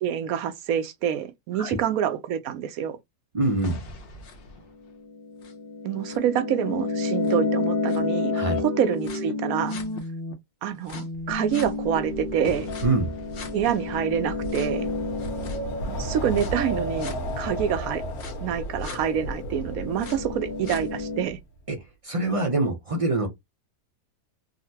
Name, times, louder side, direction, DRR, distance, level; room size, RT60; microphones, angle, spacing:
voice 1, 0.0-3.0 5.8-8.3 8.6-9.8 10.6-12.7 13.5-14.9 15.9-18.0 18.4-21.4, right 9 dB, 75° right, 1.0 m, -27 dB
voice 2, 3.3-3.8 8.3-8.6 12.8-13.1 21.7-21.8 22.0-23.3, right 2 dB, 40° right, 0.4 m, -24 dB
sound 1, 3.4-10.3 10.9-16.5 17.0-17.1 18.2-18.3 18.8-19.0 19.5-21.2, left 3 dB, 55° left, 0.7 m, -31 dB
Wind, 11.3-21.4, equal, 80° left, 1.4 m, -34 dB
3.8 x 2.1 x 2.7 m
omnidirectional pair, 1.5 m